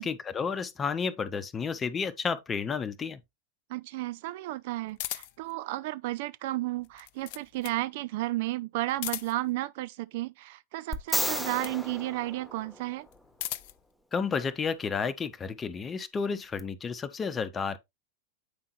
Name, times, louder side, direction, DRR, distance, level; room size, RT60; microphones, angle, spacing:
voice 1, 0.0-3.2 14.1-17.8, left 5 dB, 20° left, 0.9 m, -31 dB
voice 2, 3.7-13.1, right 17 dB, 50° right, 0.4 m, -33 dB
sound 1, 5.0-5.5 6.8-7.8 8.9-9.5 11.0-11.8 13.1-13.8, left 15 dB, 50° left, 0.5 m, -38 dB
sound 2, 10.9-13.2 16.6-16.7, equal, ahead, 0.9 m, -33 dB
8.7 x 5.5 x 3.1 m
figure-of-eight pair, 90°, 0 cm